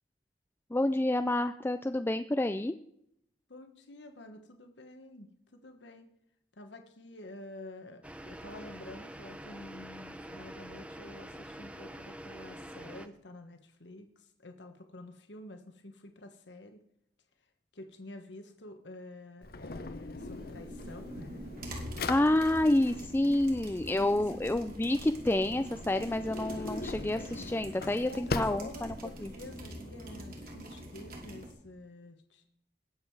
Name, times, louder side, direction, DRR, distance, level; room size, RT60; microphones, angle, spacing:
voice 1, 0.7-2.7 22.1-28.9 29.2-29.3, left 1 dB, 10° left, 9 dB, 0.4 m, -28 dB
voice 2, 3.5-6.1 6.5-16.8 17.7-21.5 23.9-24.4 28.0-32.5, left 2 dB, 85° left, 6 dB, 1.4 m, -49 dB
sound 1, 8.0-13.1, right 1 dB, 5° right, 0.8 m, -46 dB
Drawer open or close, 19.4-29.4, left 3 dB, 60° left, 0.9 m, -41 dB
sound 2, 20.2-31.5, equal, 55° right, 3.3 m, -45 dB
20.0 x 7.6 x 4.7 m, 0.73 s
head